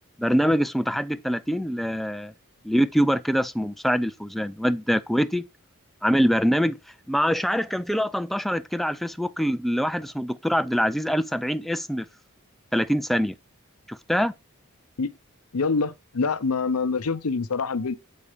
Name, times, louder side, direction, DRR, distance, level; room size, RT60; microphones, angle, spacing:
voice 1, 0.2-2.3 2.6-5.4 6.0-6.8 7.1-12.0 12.7-13.4 13.9-14.3, equal, ahead, 0.4 m, -24 dB
voice 2, 15.5-17.9, left 4 dB, 90° left, 0.7 m, -25 dB
8.5 x 4.0 x 5.0 m
head